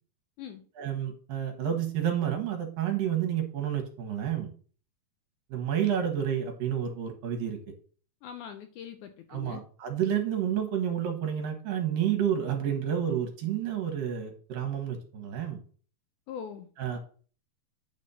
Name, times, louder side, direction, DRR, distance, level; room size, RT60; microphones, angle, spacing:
voice 1, 0.8-4.5 5.5-7.6 9.3-15.6 16.8-17.0, right 9 dB, 70° right, 4 dB, 2.9 m, -30 dB
voice 2, 8.2-9.7 16.3-16.7, left 8 dB, 80° left, 8 dB, 1.8 m, -42 dB
9.3 x 4.3 x 5.5 m, 0.41 s
omnidirectional pair, 4.3 m